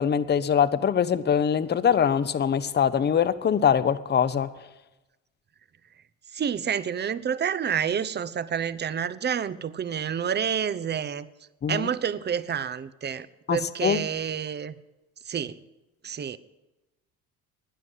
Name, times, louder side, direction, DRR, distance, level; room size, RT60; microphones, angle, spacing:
voice 1, 0.0-4.5 11.6-11.9 13.5-14.0, left 8 dB, 25° left, 15 dB, 0.7 m, -23 dB
voice 2, 6.3-11.3 11.7-14.7 15.3-15.6 16.0-16.4, right 8 dB, 25° right, 17 dB, 0.7 m, -29 dB
12.5 x 9.7 x 8.0 m, 1.0 s
hypercardioid pair, 60°, 40 cm